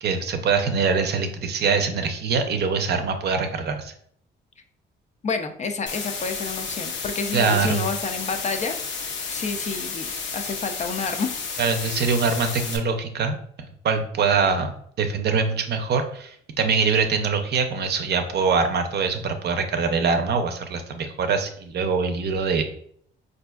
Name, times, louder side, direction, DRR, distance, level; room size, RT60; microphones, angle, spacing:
voice 1, 0.0-3.9 7.3-7.8 11.6-14.7 15.0-22.6, right 5 dB, 55° right, 6 dB, 0.5 m, -23 dB
voice 2, 5.2-8.8 9.3-10.1 10.3-11.3, left 4 dB, 35° left, 6 dB, 0.4 m, -29 dB
sound 1, 5.9-12.8, left 5 dB, 70° left, 0.7 m, -32 dB
4.1 x 2.5 x 2.3 m, 0.65 s
cardioid pair, 90°, 20 cm